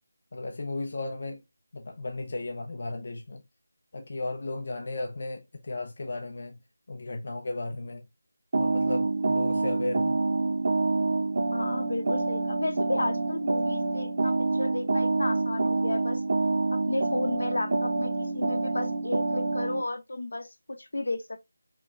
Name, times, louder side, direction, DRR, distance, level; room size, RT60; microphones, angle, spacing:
voice 1, 0.3-1.4 1.7-3.4 3.9-6.6 6.9-8.0 8.5-10.2, left 2 dB, 40° left, 0.6 m, -35 dB
sound 1, 8.5-19.8, right 3 dB, 35° right, 0.4 m, -27 dB
voice 2, 11.5-16.2 16.7-21.4, left 2 dB, 70° left, 0.9 m, -33 dB
4.7 x 2.9 x 2.4 m
figure-of-eight pair, 180°, 0 cm